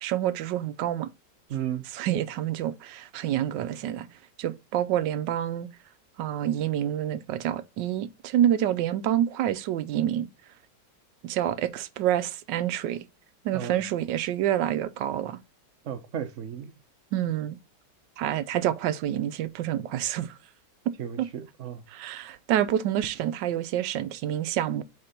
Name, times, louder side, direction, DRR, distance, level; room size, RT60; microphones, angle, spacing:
voice 1, 0.0-1.1 1.9-4.1 4.4-5.7 6.2-10.3 11.2-13.0 13.4-15.4 17.1-17.6 18.2-20.3 21.2-21.3 21.9-24.8, right 11 dB, 90° right, 1.3 m, -27 dB
voice 2, 1.5-1.8 13.5-13.8 15.8-16.7 21.0-21.8, right 9 dB, 55° right, 1.1 m, -34 dB
4.3 x 4.3 x 5.0 m
omnidirectional pair, 1.9 m